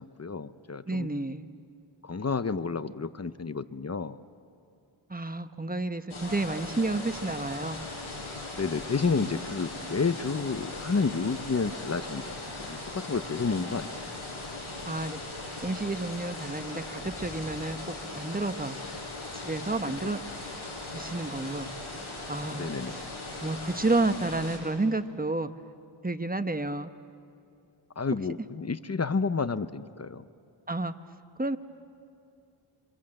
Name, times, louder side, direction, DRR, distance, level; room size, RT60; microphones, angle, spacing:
voice 1, 0.0-1.1 2.0-4.2 8.5-14.0 20.0-20.1 22.5-23.0 28.0-30.2, left 4 dB, 30° left, 13 dB, 0.9 m, -30 dB
voice 2, 0.9-1.5 5.1-7.8 14.8-15.2 15.6-17.8 18.1-18.8 19.3-20.2 20.9-21.7 22.3-23.0 23.4-25.5 26.0-26.9 30.7-30.9 31.4-31.6, right 2 dB, 20° right, 9 dB, 1.1 m, -30 dB
sound 1, 6.1-24.6, left 2 dB, 85° left, 7.0 m, -39 dB
28.0 x 26.5 x 7.8 m, 2.5 s
cardioid pair, 55°, 48 cm